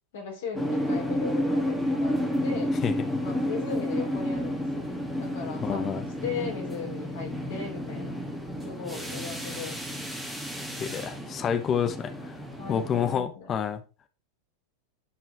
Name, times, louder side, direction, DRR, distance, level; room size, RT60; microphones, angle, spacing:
voice 1, 0.1-2.8 3.2-4.9 5.2-8.2 8.6-10.1 12.6-13.5, left 6 dB, 55° left, 3.2 m, -37 dB
sound 1, 0.5-13.1, equal, 5° right, 2.2 m, -31 dB
voice 2, 5.6-6.0 10.8-12.3 12.7-13.8, left 8 dB, 25° left, 1.0 m, -28 dB
11.0 x 4.9 x 3.4 m
figure-of-eight pair, 90°, 0 cm